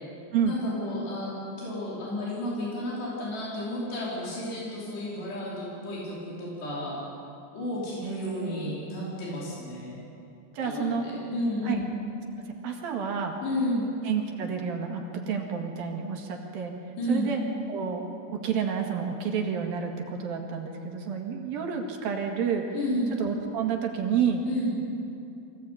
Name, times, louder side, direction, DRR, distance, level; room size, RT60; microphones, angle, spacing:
voice 1, 0.5-1.3 1.6-7.0 7.5-10.0 10.6-11.9 13.4-13.9 17.0-17.3 22.7-23.1 24.5-24.8, left 1 dB, 75° left, -6 dB, 7.2 m, -32 dB
voice 2, 8.0-8.6 10.6-11.0 11.6-11.8 12.5-13.4 14.1-16.7 17.1-17.4 17.7-22.7 23.2-24.4, right 7 dB, 65° right, 2 dB, 3.5 m, -30 dB
24.0 x 17.0 x 8.5 m, 2.7 s
omnidirectional pair, 4.8 m